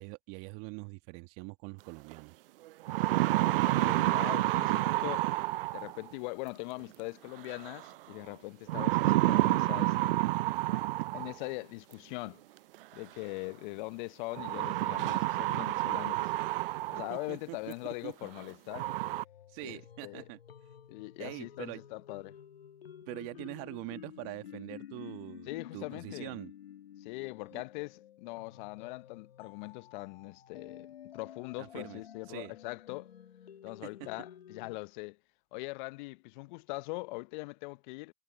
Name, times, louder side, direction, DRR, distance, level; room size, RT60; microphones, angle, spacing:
voice 1, 0.0-2.4 17.1-18.1 19.5-20.4 21.2-21.8 23.1-26.5 27.5-27.6 31.6-32.0 32.3-32.6 33.8-34.1, right 29 dB, 50° right, 1.9 m, -44 dB
sound 1, 2.1-2.2 2.7-6.1 7.5-7.9 8.7-11.5 12.7-12.8 14.4-17.2 17.7-17.8 18.4-18.5 18.7-19.2, right 17 dB, 65° right, 0.5 m, -29 dB
voice 2, 3.4-5.3 5.7-10.2 11.1-12.4 12.9-16.3 16.9-18.9 19.6-20.3 20.9-22.3 25.5-26.4 27.0-33.1 33.6-35.2 35.5-38.1, left 25 dB, 55° left, 0.9 m, -41 dB
sound 2, 18.7-34.8, left 10 dB, 80° left, 2.5 m, -51 dB
hypercardioid pair, 100°, 30 cm